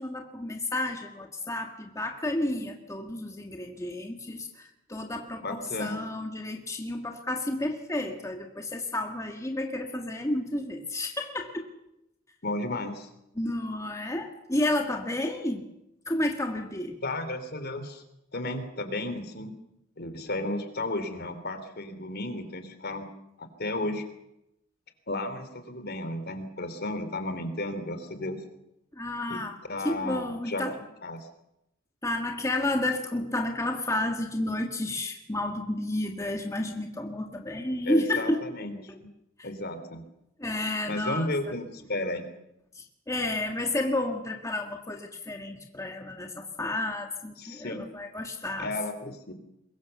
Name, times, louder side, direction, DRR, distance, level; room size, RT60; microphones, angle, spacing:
voice 1, 0.0-11.7 13.4-15.6 16.1-17.0 28.9-29.6 29.8-30.8 32.0-38.4 38.9-39.0 39.4-39.5 40.4-41.3 42.7-48.7, left 1 dB, 15° left, 3 dB, 1.9 m, -31 dB
voice 2, 5.4-6.0 12.4-13.1 17.0-18.0 18.3-19.5 20.0-23.1 23.4-24.0 25.1-28.4 29.3-29.4 29.7-30.7 31.0-31.2 37.9-39.1 39.4-40.0 40.9-42.2 47.4-47.8 48.6-49.3, left 2 dB, 55° left, 9 dB, 3.1 m, -33 dB
23.5 x 21.5 x 7.0 m, 0.85 s
head